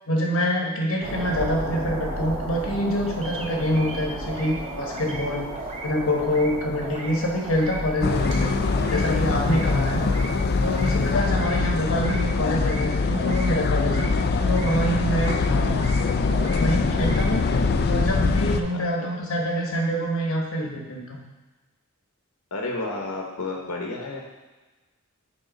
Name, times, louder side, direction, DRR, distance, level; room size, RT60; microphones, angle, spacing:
voice 1, 0.1-5.5 5.8-8.5 8.9-10.0 10.6-14.0 14.4-15.9 16.5-17.5 17.9-21.2, equal, 65° left, 0 dB, 1.1 m, -26 dB
sound 1, 1.0-11.1, right 1 dB, 60° right, 1.4 m, -35 dB
sound 2, 3.2-3.5 3.7-4.6 4.8-5.3 5.6-5.9 6.2-6.5 6.8-7.2 7.4-7.8 8.1-8.4 8.7-9.1 9.3-9.7 10.0-10.3 10.6-11.0 11.2-11.6 11.9-12.2 12.5-12.9 13.1-13.5 13.8-14.1 14.4-14.8 15.0-15.4 15.7-16.0 16.3-16.7 16.9-17.3, right 2 dB, 30° right, 0.7 m, -38 dB
sound 3, 8.0-18.6, left 4 dB, 50° left, 0.4 m, -23 dB
voice 2, 18.7-19.1 22.5-24.2, left 2 dB, 90° left, 0 dB, 0.9 m, -32 dB
6.4 x 3.8 x 5.1 m, 1.2 s
head